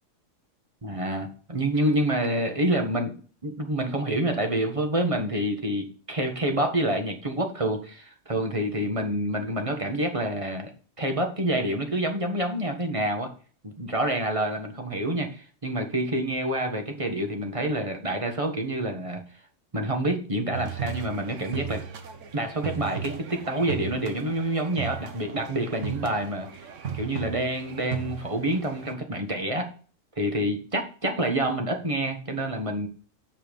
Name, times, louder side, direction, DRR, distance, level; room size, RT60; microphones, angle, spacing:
voice 1, 0.8-10.7 11.0-13.3 13.6-19.2 19.7-21.8 22.3-26.6 26.9-29.7 30.2-32.9, right 1 dB, 25° right, 4 dB, 1.4 m, -27 dB
sound 1, 20.5-28.9, right 8 dB, 70° right, 1.2 m, -36 dB
7.5 x 5.8 x 5.1 m, 0.40 s
omnidirectional pair, 1.4 m